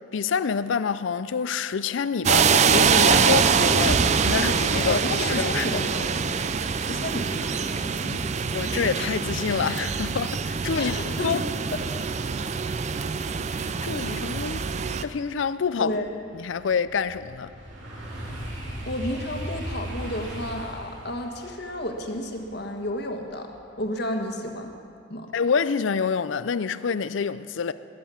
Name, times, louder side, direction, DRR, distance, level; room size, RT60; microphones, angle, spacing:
voice 1, 0.1-5.9 8.5-11.0 11.2-11.4 13.5-16.0 16.3-17.5 25.3-27.7, left 6 dB, 75° left, 0.5 m, -27 dB
sound 1, 2.2-15.0, right 6 dB, 35° right, 0.4 m, -24 dB
sound 2, 3.5-7.3, equal, 55° right, 4.9 m, -40 dB
voice 2, 4.8-6.4 6.7-8.2 10.8-11.4 11.7-11.8 15.8-16.1 18.5-18.6 18.9-23.5 23.8-24.7 25.1-25.3, left 1 dB, 55° left, 1.4 m, -32 dB
sound 3, 15.4-23.9 24.3-24.7, equal, 75° right, 2.9 m, -38 dB
19.5 x 7.7 x 7.2 m
head